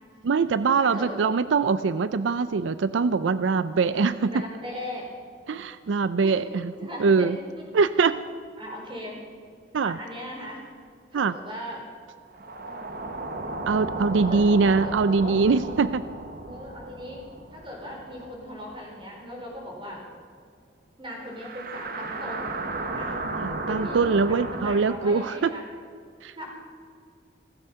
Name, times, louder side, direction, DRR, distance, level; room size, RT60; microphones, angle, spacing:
voice 1, 0.2-4.3 5.5-6.6 7.0-7.4 7.7-8.2 9.7-10.0 11.1-11.3 13.7-16.0 23.4-25.5 26.2-26.4, right 4 dB, 85° right, 14 dB, 0.4 m, -23 dB
voice 2, 0.8-1.3 4.3-5.1 6.2-6.3 6.7-7.4 8.6-9.2 9.8-10.6 11.1-11.8 12.7-12.8 14.2-14.4 14.7-15.7 16.4-17.2 17.5-20.0 21.0-22.5 22.9-23.2 23.7-25.7 26.4-26.5, equal, 30° right, -1 dB, 4.2 m, -38 dB
sound 1, 12.3-18.9 19.2-19.3 21.3-24.8, right 2 dB, 50° right, 1.3 m, -34 dB
15.5 x 15.5 x 5.7 m, 2.2 s
head